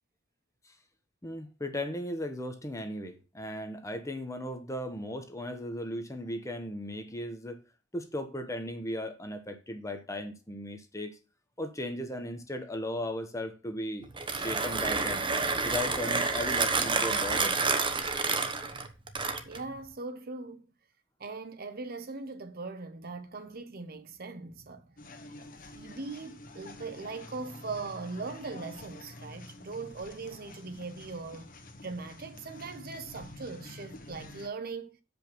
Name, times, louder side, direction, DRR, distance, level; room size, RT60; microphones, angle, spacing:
voice 1, 1.2-7.6 7.9-11.2 11.6-15.2 15.6-17.6, left 1 dB, 15° left, 1.1 m, -37 dB
Mechanisms, 14.0-19.7, right 4 dB, 25° right, 1.0 m, -29 dB
voice 2, 19.5-20.6 21.2-24.9 25.7-31.5 31.8-35.0, right 3 dB, 50° right, 1.0 m, -40 dB
sound 1, 25.0-34.5, left 2 dB, 45° left, 1.3 m, -48 dB
7.8 x 5.3 x 6.0 m
head